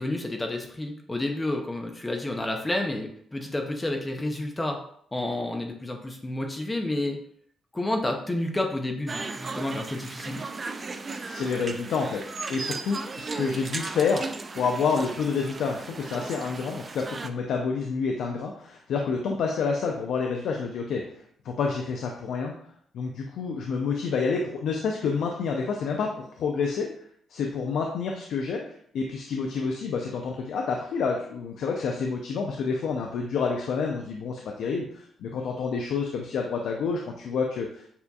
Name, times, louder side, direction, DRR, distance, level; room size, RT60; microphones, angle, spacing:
voice 1, 0.0-4.8 5.1-7.2 7.7-10.4, left 1 dB, 20° left, 3 dB, 0.5 m, -30 dB
sound 1, 9.1-17.3, right 3 dB, 35° right, 0.3 m, -36 dB
voice 2, 11.1-12.2 12.5-14.3 14.5-21.0 21.4-22.5 22.9-26.9 27.3-28.6 28.9-37.8, left 5 dB, 75° left, 1 dB, 0.5 m, -28 dB
6.8 x 2.6 x 2.3 m, 0.63 s
cardioid pair, 90°, 0 cm